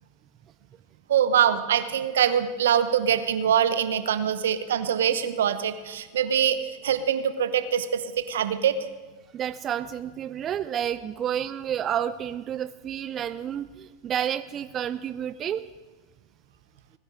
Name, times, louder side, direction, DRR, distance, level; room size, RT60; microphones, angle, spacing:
voice 1, 1.1-8.8, right 9 dB, 75° right, 11 dB, 0.9 m, -24 dB
voice 2, 9.3-15.7, right 9 dB, 35° right, 12 dB, 0.4 m, -30 dB
20.0 x 10.5 x 4.8 m, 1.3 s
hypercardioid pair, 90°, 0 cm